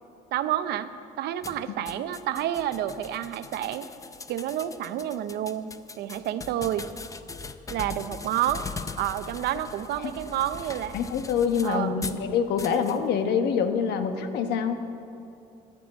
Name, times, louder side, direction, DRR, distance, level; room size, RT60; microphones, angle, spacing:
voice 1, 0.3-0.9 1.2-3.9 4.3-5.7 6.0-6.9 7.7-8.6 9.0-11.0 11.6-11.9, right 11 dB, 75° right, 12 dB, 0.7 m, -29 dB
sound 1, 1.4-12.2 12.6-13.0, left 4 dB, 20° left, 0.6 m, -40 dB
voice 2, 10.9-14.8, left 6 dB, 80° left, 7 dB, 1.1 m, -25 dB
11.5 x 10.5 x 8.2 m, 2.6 s
cardioid pair, 110°, 17 cm